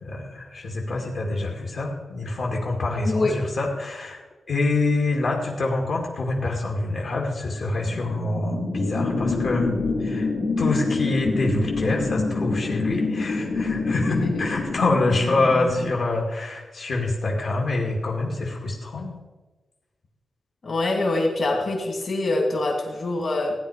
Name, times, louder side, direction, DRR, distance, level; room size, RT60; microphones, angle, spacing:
voice 1, 0.0-9.7 10.0-10.3 10.6-19.2, left 2 dB, 60° left, -1 dB, 2.3 m, -26 dB
sound 1, 7.8-15.9, left 3 dB, 75° left, 3.0 m, -27 dB
voice 2, 14.1-14.5 20.6-23.5, left 2 dB, 45° left, 1 dB, 2.5 m, -24 dB
16.0 x 9.9 x 5.0 m, 1.2 s
wide cardioid pair, 150°, 0 cm